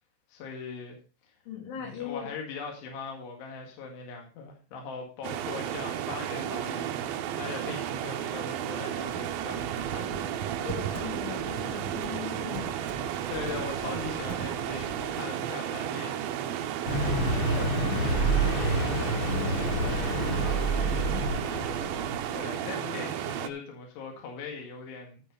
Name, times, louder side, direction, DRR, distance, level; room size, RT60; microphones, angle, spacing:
voice 1, 0.3-1.0 1.8-10.4 13.3-16.3 22.3-25.2, left 5 dB, 70° left, 1 dB, 3.9 m, -40 dB
voice 2, 1.5-2.3 10.6-13.1 17.2-21.8, left 7 dB, 85° left, 1 dB, 5.2 m, -40 dB
sound 1, 5.2-23.5, right 10 dB, 85° right, 2.1 m, -33 dB
Computer keyboard, 9.1-15.1, right 5 dB, 65° right, 1.2 m, -41 dB
Car passing by, 16.9-22.4, right 2 dB, 45° left, 4.1 m, -28 dB
13.5 x 5.4 x 5.3 m, 0.35 s
omnidirectional pair, 5.3 m